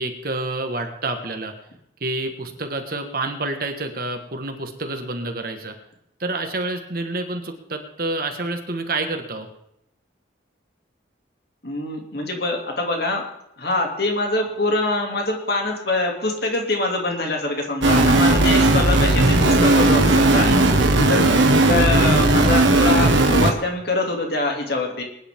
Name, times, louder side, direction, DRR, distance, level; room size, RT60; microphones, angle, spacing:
voice 1, 0.0-1.5 2.0-5.7 6.2-9.5 20.4-21.1, right 2 dB, 50° right, 5 dB, 1.7 m, -28 dB
voice 2, 11.6-13.2 13.6-20.5 21.0-25.0, left 2 dB, 55° left, 1 dB, 2.7 m, -24 dB
sound 1, 17.8-23.5, right 2 dB, 80° right, 1.7 m, -16 dB
22.0 x 10.0 x 3.7 m, 0.78 s
head